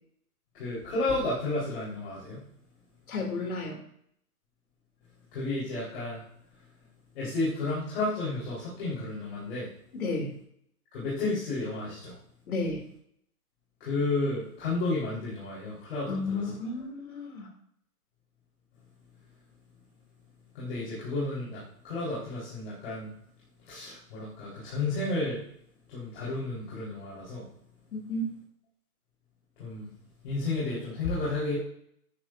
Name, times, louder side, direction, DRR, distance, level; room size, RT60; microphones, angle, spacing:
voice 1, 0.5-2.4 5.3-6.2 7.1-9.7 10.9-12.1 13.8-16.5 20.5-23.1 23.7-25.4 25.9-27.5 29.6-29.9 30.2-31.6, left 2 dB, 40° left, -7 dB, 4.2 m, -32 dB
voice 2, 3.1-3.8 9.9-10.3 12.5-12.8 16.1-17.5 27.9-28.3, left 2 dB, 65° left, 2 dB, 2.8 m, -32 dB
13.0 x 9.9 x 2.6 m, 0.68 s
hypercardioid pair, 160°, 47 cm